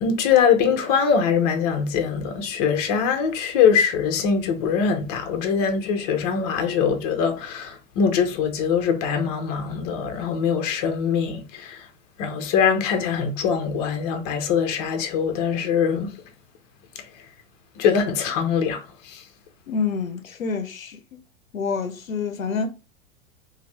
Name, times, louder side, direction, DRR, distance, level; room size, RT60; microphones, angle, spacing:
voice 1, 0.0-11.8 12.2-16.1 17.8-18.8 19.1-19.2, left 6 dB, 30° left, 0.5 m, -22 dB
voice 2, 19.7-21.2 21.5-22.7, left 5 dB, 75° left, 0.5 m, -27 dB
2.6 x 2.6 x 3.1 m
figure-of-eight pair, 95°, 41 cm